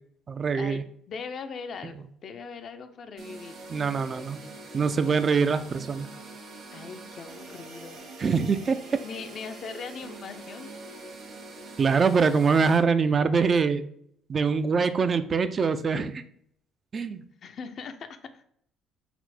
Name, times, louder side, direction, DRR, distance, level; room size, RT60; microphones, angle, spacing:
voice 1, 0.3-0.8 3.7-4.4 4.7-6.1 8.2-8.8 11.8-13.8 14.3-16.2 16.9-17.2, right 5 dB, 40° right, 11 dB, 0.3 m, -24 dB
voice 2, 1.1-3.6 6.7-8.0 9.0-11.0 17.4-18.4, left 5 dB, 55° left, 8 dB, 0.4 m, -40 dB
sound 1, 3.2-12.8, right 2 dB, 60° right, 1.2 m, -44 dB
4.2 x 2.1 x 4.0 m, 0.67 s
hypercardioid pair, 60°, 0 cm